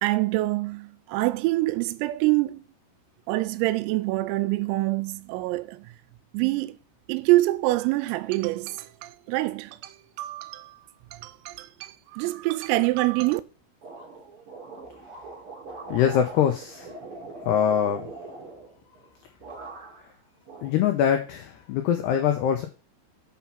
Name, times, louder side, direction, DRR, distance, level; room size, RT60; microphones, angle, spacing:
voice 1, 0.0-2.6 3.3-5.9 6.3-6.8 7.1-10.8 11.1-13.4, right 19 dB, 90° right, 3.3 m, -26 dB
sound 1, 13.8-19.1 19.4-20.1 20.5-21.3, right 3 dB, 40° right, 2.2 m, -42 dB
voice 2, 15.9-16.9 17.4-18.1 20.6-22.7, left 9 dB, 85° left, 2.3 m, -23 dB
7.6 x 5.9 x 5.7 m
omnidirectional pair, 5.9 m